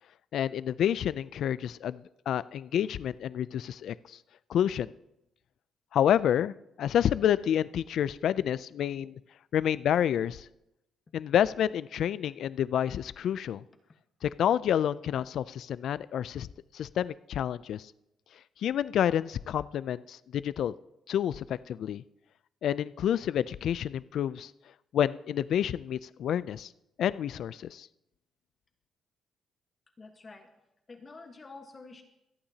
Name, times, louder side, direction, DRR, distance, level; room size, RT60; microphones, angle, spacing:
voice 1, 0.3-2.0 2.3-4.2 4.5-4.9 5.9-9.2 9.5-10.5 11.1-13.6 14.2-16.5 16.7-17.9 18.6-20.7 21.1-22.0 22.6-24.5 24.9-26.7 27.0-27.9, left 10 dB, 70° left, 17 dB, 0.3 m, -29 dB
voice 2, 30.0-30.5 30.9-32.0, left 3 dB, 35° left, 4 dB, 1.2 m, -48 dB
26.0 x 8.7 x 2.8 m, 0.87 s
cardioid pair, 90°, 0 cm